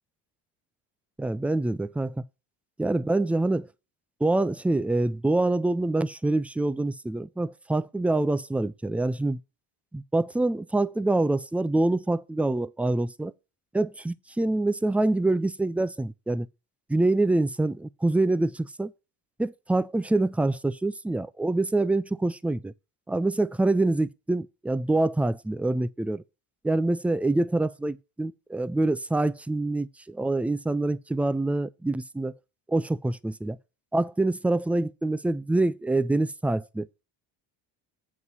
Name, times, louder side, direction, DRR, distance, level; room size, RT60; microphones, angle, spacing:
voice 1, 1.2-2.2 2.8-3.7 4.2-9.4 9.9-13.3 13.7-16.5 16.9-18.9 19.4-22.7 23.1-26.2 26.6-32.3 32.7-33.6 33.9-36.9, right 2 dB, 5° right, 0.4 m, -25 dB
8.2 x 4.8 x 5.3 m
supercardioid pair, 75°, 48 cm